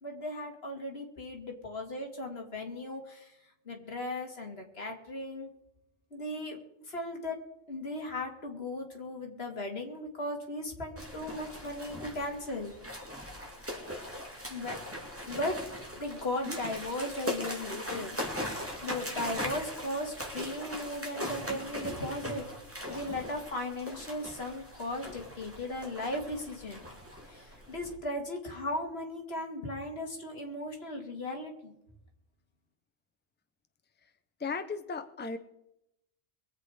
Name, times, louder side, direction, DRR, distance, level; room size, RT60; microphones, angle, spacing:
voice 1, 0.0-3.3 3.7-5.5 6.1-6.6 6.9-7.4 7.7-12.7 14.5-14.8 15.3-15.5 16.0-18.2 18.8-22.4 22.9-26.8 27.3-31.7, left 1 dB, 55° left, 2 dB, 2.3 m, -37 dB
sound 1, 11.0-28.0, equal, 10° right, 2.6 m, -40 dB
voice 2, 34.4-35.4, left 4 dB, 10° left, 9 dB, 0.6 m, -35 dB
23.0 x 8.1 x 4.9 m, 0.85 s
omnidirectional pair, 1.2 m